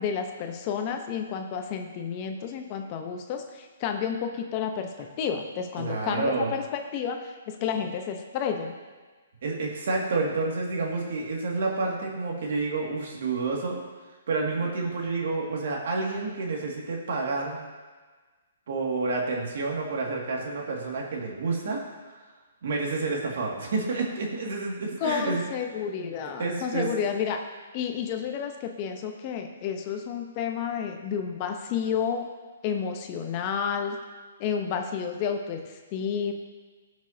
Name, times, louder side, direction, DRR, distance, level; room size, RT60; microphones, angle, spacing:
voice 1, 0.0-8.7 25.0-27.4 27.7-32.3 32.6-34.0 34.4-36.3, left 7 dB, 35° left, 4 dB, 0.9 m, -31 dB
voice 2, 5.8-6.5 9.4-13.8 14.3-17.6 18.7-21.8 22.6-25.4 26.4-26.9, right 3 dB, 65° right, -1 dB, 2.2 m, -29 dB
18.5 x 6.2 x 2.8 m, 1.4 s
hypercardioid pair, 145°, 0 cm